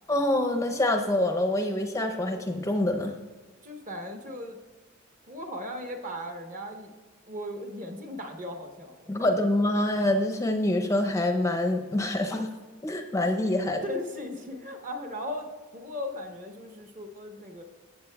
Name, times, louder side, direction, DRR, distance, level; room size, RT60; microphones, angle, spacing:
voice 1, 0.1-3.1 9.1-12.5 12.8-13.8, left 1 dB, 15° left, 5 dB, 0.5 m, -26 dB
voice 2, 3.6-4.6 5.3-6.9 7.3-9.3 13.8-17.6, left 1 dB, 40° right, 4 dB, 1.0 m, -37 dB
15.0 x 7.4 x 2.3 m, 1.4 s
head